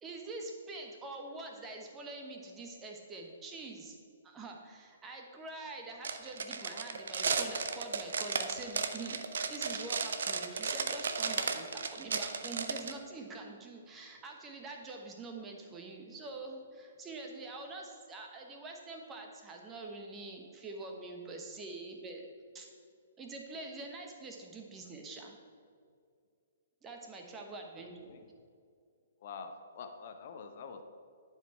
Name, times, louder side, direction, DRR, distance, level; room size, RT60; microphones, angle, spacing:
voice 1, 0.0-4.0 4.2-9.2 9.4-22.3 22.5-22.7 23.2-25.4 26.8-28.2, right 3 dB, 15° right, 2 dB, 1.2 m, -45 dB
sound 1, 6.0-12.9, right 5 dB, 60° right, 0.6 m, -34 dB
voice 2, 27.8-28.2 29.2-30.8, left 5 dB, 45° left, 6 dB, 0.8 m, -46 dB
10.5 x 4.9 x 4.5 m, 2.3 s
figure-of-eight pair, 120°, 0 cm